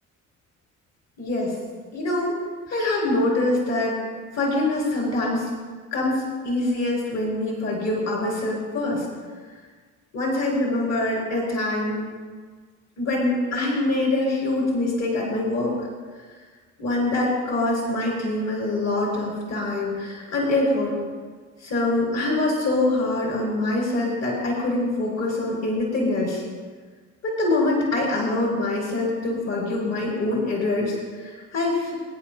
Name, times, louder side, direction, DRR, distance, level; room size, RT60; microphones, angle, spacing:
voice 1, 1.2-1.5 1.9-2.4 2.7-4.0 4.3-5.5 5.9-9.1 10.1-12.1 13.0-15.8 16.8-20.9 21.6-26.4 27.2-31.9, left 2 dB, 60° left, -3 dB, 3.8 m, -24 dB
23.0 x 10.0 x 2.3 m, 1.5 s
cardioid pair, 90°, 30 cm